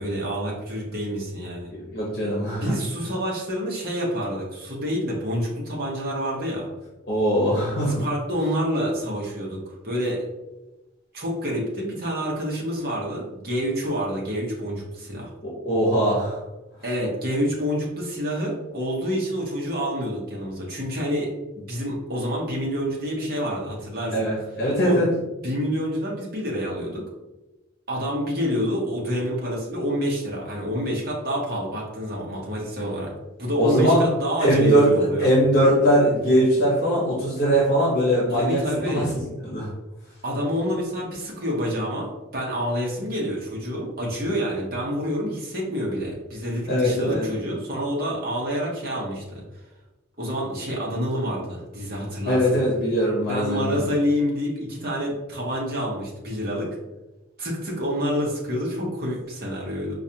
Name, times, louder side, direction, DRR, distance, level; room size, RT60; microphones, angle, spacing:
voice 1, 0.0-1.7 2.5-6.7 7.8-10.3 11.1-15.3 16.8-21.3 21.6-24.2 24.8-25.0 25.4-27.0 27.9-33.1 33.4-35.3 38.3-39.1 40.2-49.4 50.2-52.5 53.3-56.7 57.4-60.0, equal, 50° right, -3 dB, 1.0 m, -28 dB
voice 2, 1.9-2.6 7.1-8.0 15.4-16.4 24.1-25.1 33.6-34.0 34.4-38.6 38.9-39.0 39.4-39.7 46.7-47.2 52.3-53.8, equal, 50° left, -5 dB, 0.9 m, -21 dB
4.7 x 2.4 x 2.8 m, 1.0 s
head